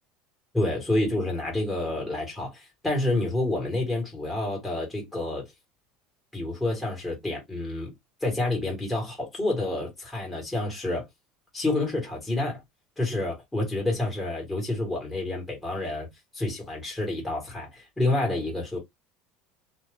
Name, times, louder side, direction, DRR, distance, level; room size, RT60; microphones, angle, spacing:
voice 1, 0.5-5.5 6.3-7.9 8.2-11.1 11.5-12.6 13.0-16.1 16.3-18.8, left 2 dB, 5° left, 1.3 m, -28 dB
2.6 x 2.3 x 3.3 m
cardioid pair, 150°, 0 cm